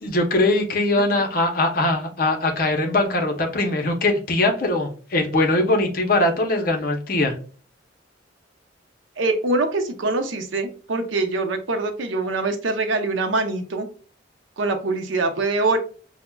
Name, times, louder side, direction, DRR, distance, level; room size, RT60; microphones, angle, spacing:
voice 1, 0.0-7.3, left 2 dB, 50° left, 3 dB, 0.6 m, -21 dB
voice 2, 9.2-13.9 14.6-15.8, right 2 dB, 90° right, 6 dB, 0.6 m, -24 dB
5.9 x 2.1 x 2.2 m, 0.41 s
head